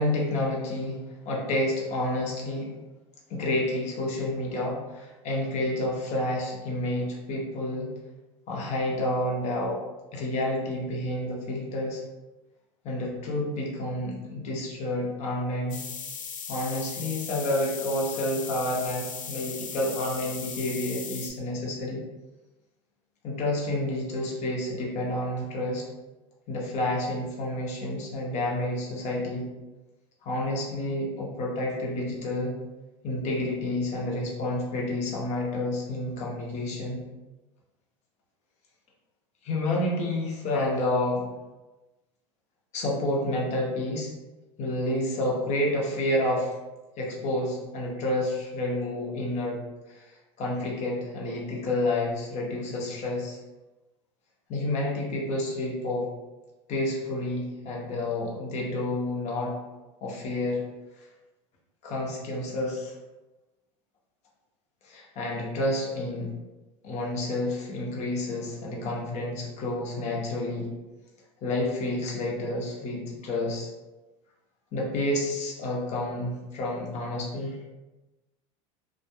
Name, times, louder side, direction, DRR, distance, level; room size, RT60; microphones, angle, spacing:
voice 1, 0.0-2.7 3.3-7.9 8.5-9.8 10.1-12.0 12.8-15.8 16.5-22.0 23.2-25.8 26.5-29.4 30.2-32.5 33.0-37.0 39.4-41.3 42.7-44.1 44.6-46.5 47.0-49.6 49.9-50.1 50.4-53.4 54.5-56.1 56.7-59.6 60.0-60.6 61.0-61.1 61.8-62.9 64.8-66.3 66.8-70.7 71.4-73.7 74.7-77.6, left 1 dB, 45° left, -3 dB, 0.8 m, -29 dB
sound 1, 15.7-21.3, left 6 dB, 90° left, 0.5 m, -38 dB
2.7 x 2.3 x 2.2 m, 1.1 s
supercardioid pair, 115°, 16 cm